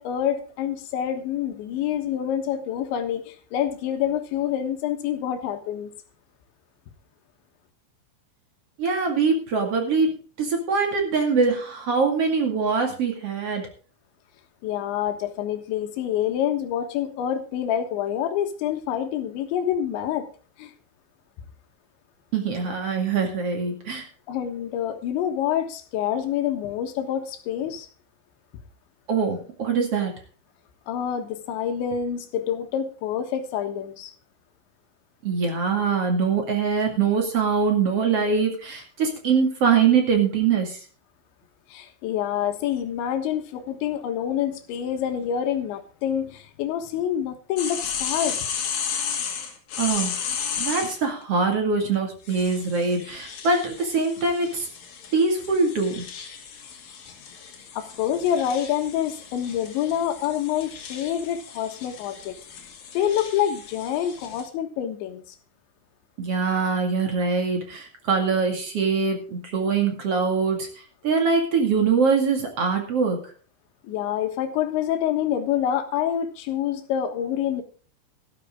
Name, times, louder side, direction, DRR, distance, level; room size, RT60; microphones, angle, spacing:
voice 1, 0.0-5.9 14.6-20.3 20.6-20.7 24.3-27.9 30.9-34.1 41.7-48.4 57.7-62.7 63.0-65.2 73.8-77.6, left 10 dB, 75° left, 6 dB, 3.6 m, -27 dB
voice 2, 8.8-13.7 22.3-24.1 29.1-30.1 35.2-40.8 49.8-50.2 50.6-54.7 55.1-56.0 66.2-70.7 71.0-73.2, right 5 dB, 45° right, 3 dB, 2.3 m, -23 dB
sound 1, 47.6-51.0 52.3-64.5, left 7 dB, 55° left, 3.4 m, -34 dB
13.0 x 12.5 x 3.7 m, 0.40 s
omnidirectional pair, 5.4 m